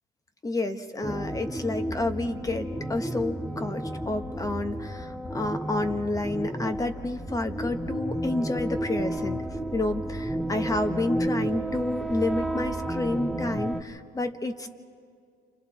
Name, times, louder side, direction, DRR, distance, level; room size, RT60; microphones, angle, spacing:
voice 1, 0.4-9.5 9.7-14.7, left 2 dB, 20° left, 8 dB, 1.2 m, -30 dB
sound 1, 1.0-13.8, right 1 dB, ahead, 1.0 m, -32 dB
29.5 x 26.5 x 4.2 m, 2.3 s
cardioid pair, 110°, 17 cm